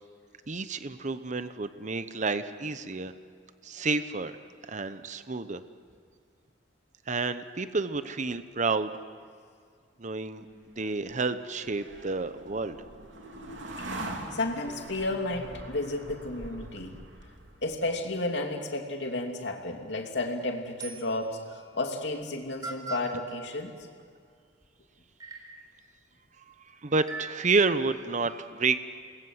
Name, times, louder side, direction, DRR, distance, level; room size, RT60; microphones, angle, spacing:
voice 1, 0.5-3.1 3.6-4.4 4.6-5.6 7.1-9.0 10.0-10.5 10.8-12.8 26.4-28.8, right 4 dB, 40° right, 11 dB, 0.9 m, -30 dB
sound 1, 10.5-17.9, right 1 dB, 90° right, 3.3 m, -43 dB
voice 2, 14.3-16.9 17.6-23.8, left 2 dB, 65° left, 3 dB, 2.9 m, -32 dB
sound 2, 20.0-20.3 20.8-21.4 22.2-22.3 22.6-23.1 24.6-24.7 25.2-25.7 27.0-27.6, right 3 dB, 20° right, 4.2 m, -40 dB
28.0 x 21.0 x 7.9 m, 2.1 s
head